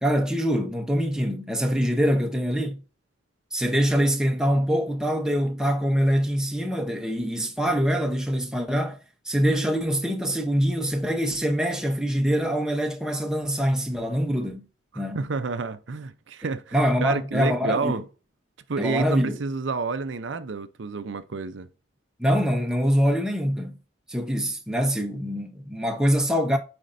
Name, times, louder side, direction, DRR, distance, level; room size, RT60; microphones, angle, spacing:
voice 1, 0.0-2.8 3.5-9.0 9.2-14.7 15.0-15.3 16.7-18.0 18.8-19.4 22.2-23.8 24.1-26.6, equal, 5° right, 0.8 m, -24 dB
voice 2, 14.9-18.0 18.7-21.7, right 4 dB, 65° right, 0.6 m, -29 dB
9.1 x 4.3 x 2.6 m
head